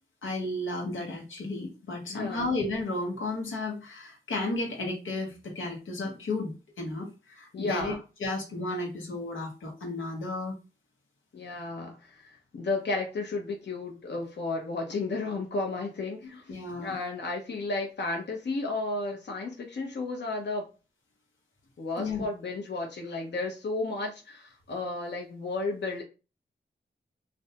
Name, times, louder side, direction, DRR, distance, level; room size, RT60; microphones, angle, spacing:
voice 1, 0.2-7.9 8.2-10.5 16.5-16.9 22.0-22.2, left 2 dB, 85° left, -1 dB, 0.9 m, -33 dB
voice 2, 2.1-2.5 7.5-8.0 11.3-16.5 16.8-20.6 21.8-26.0, left 3 dB, 60° left, 1 dB, 0.7 m, -33 dB
2.5 x 2.1 x 2.8 m, 0.31 s
cardioid pair, 40°, 20 cm